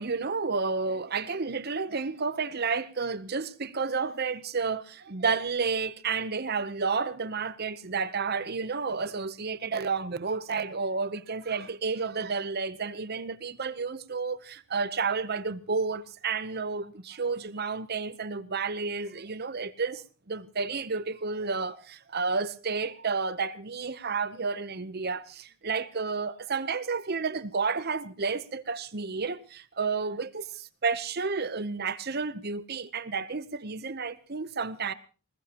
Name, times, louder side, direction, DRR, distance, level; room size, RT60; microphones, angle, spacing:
voice 1, 0.0-30.4 30.8-34.9, right 4 dB, 45° right, 0.8 m, -31 dB
20.5 x 20.0 x 3.0 m
head